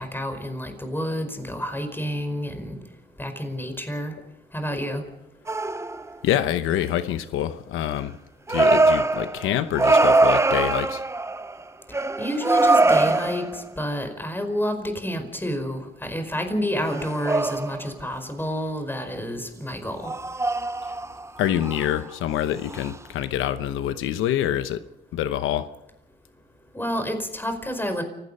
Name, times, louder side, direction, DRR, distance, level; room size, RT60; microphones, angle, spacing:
voice 1, 0.0-2.8 3.2-4.1 4.5-5.0 12.2-20.1 26.7-28.0, equal, 10° left, 7 dB, 4.9 m, -29 dB
sound 1, 5.5-6.1 8.5-11.6 11.9-13.7 16.8-17.9 20.1-21.3 21.6-22.0 22.7-22.9, right 2 dB, 15° right, 0.7 m, -22 dB
voice 2, 6.2-8.1 8.5-11.0 20.8-20.9 21.4-24.8 25.1-25.7, left 11 dB, 90° left, 11 dB, 0.9 m, -26 dB
29.0 x 16.5 x 5.5 m, 0.89 s
cardioid pair, 90°, 20 cm